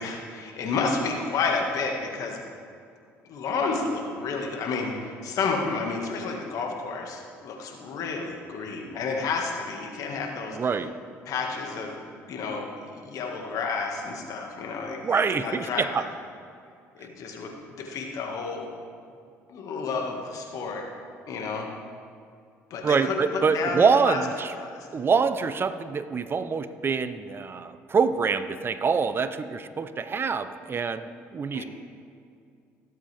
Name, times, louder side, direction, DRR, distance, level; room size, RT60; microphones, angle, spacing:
voice 1, 0.0-2.4 3.2-10.6 11.3-12.0 12.3-16.0 17.0-18.7 19.5-20.9 21.3-21.7 22.7-24.2 24.5-24.9 31.5-31.6, left 4 dB, 60° left, 1 dB, 1.8 m, -31 dB
voice 2, 10.5-10.9 15.0-16.1 22.8-24.5 24.9-31.6, right 5 dB, 35° right, 11 dB, 0.7 m, -25 dB
18.0 x 7.8 x 3.5 m, 2.3 s
hypercardioid pair, 65°, 7 cm